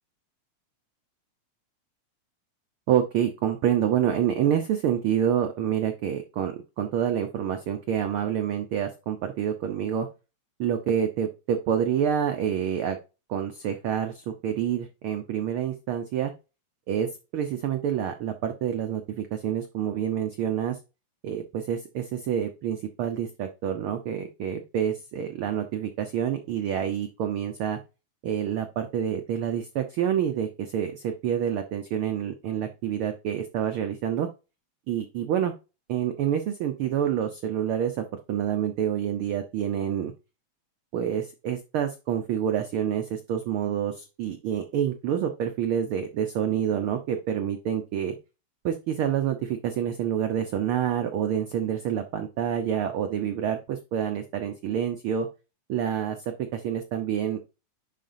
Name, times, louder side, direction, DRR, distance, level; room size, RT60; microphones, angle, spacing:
voice 1, 2.9-10.1 10.6-13.0 13.3-16.3 16.9-20.8 21.2-27.8 28.2-34.3 34.9-35.5 35.9-40.1 40.9-48.2 48.6-55.3 55.7-57.4, right 9 dB, 85° right, 6 dB, 1.2 m, -27 dB
10.5 x 4.2 x 2.6 m, 0.29 s
omnidirectional pair, 3.3 m